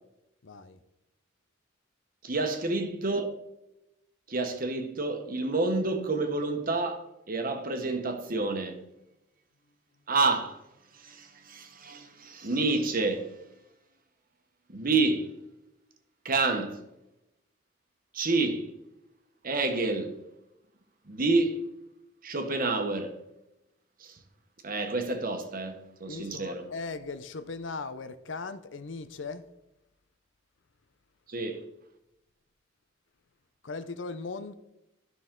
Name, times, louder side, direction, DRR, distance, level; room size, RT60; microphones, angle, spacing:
voice 1, 0.4-0.8 26.1-29.4 33.6-34.5, left 4 dB, 80° left, 0.7 m, -38 dB
voice 2, 2.2-3.3 4.3-8.8 10.1-10.6 10.9-13.3 14.7-15.3 16.2-16.8 18.1-18.7 19.4-20.2 21.1-21.6 22.2-23.2 24.0-24.2 24.6-26.7 31.3-31.6, right 3 dB, 50° right, 1.2 m, -29 dB
13.0 x 6.0 x 3.8 m
head